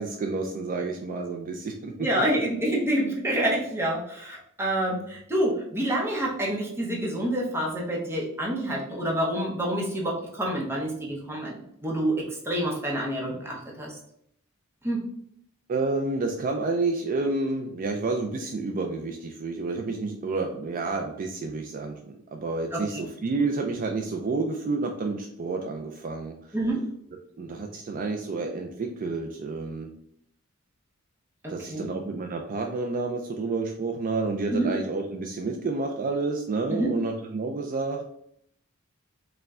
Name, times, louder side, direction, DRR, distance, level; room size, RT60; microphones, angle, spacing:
voice 1, 0.0-1.9 15.7-26.6 27.4-29.9 31.5-38.0, right 3 dB, 40° right, 3 dB, 0.3 m, -30 dB
voice 2, 2.0-14.0 14.8-15.0 22.7-22.8 26.5-26.8 31.4-31.9 34.5-34.7 36.7-36.9, right 1 dB, 10° right, -3 dB, 0.7 m, -27 dB
4.5 x 2.2 x 3.6 m, 0.71 s
head